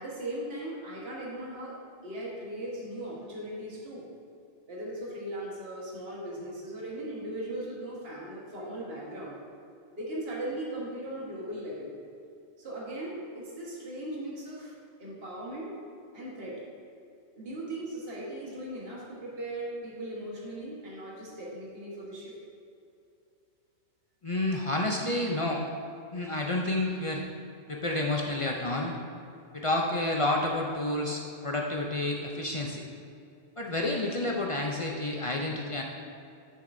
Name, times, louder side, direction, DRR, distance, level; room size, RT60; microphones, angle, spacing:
voice 1, 0.0-1.8 2.0-4.0 4.7-9.4 10.0-11.9 12.6-15.7 16.1-16.6 17.3-22.4, right 1 dB, 65° right, -5 dB, 1.6 m, -38 dB
voice 2, 24.2-25.6 26.1-27.2 27.7-29.0 29.5-32.9 33.6-35.8, left 2 dB, 40° left, 0 dB, 0.5 m, -30 dB
10.0 x 6.6 x 2.6 m, 2.6 s
omnidirectional pair, 1.1 m